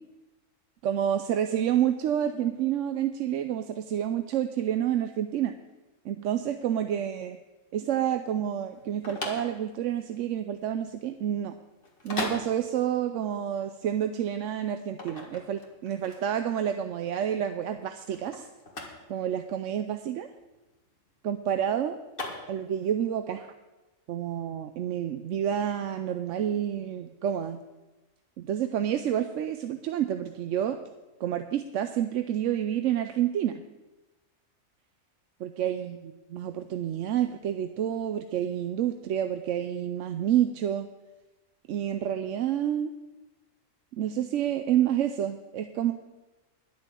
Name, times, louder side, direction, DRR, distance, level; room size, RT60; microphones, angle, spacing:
voice 1, 0.8-5.5 6.0-7.4 7.7-11.5 12.0-18.5 19.1-20.3 21.2-22.0 22.5-23.5 24.1-27.6 28.4-30.8 31.2-33.6 35.4-40.9 41.7-42.9 43.9-45.9, right 10 dB, 70° right, 8 dB, 0.9 m, -29 dB
sound 1, 8.7-22.9, left 2 dB, 40° left, 2.0 m, -40 dB
11.5 x 6.7 x 8.2 m, 1.1 s
omnidirectional pair, 1.4 m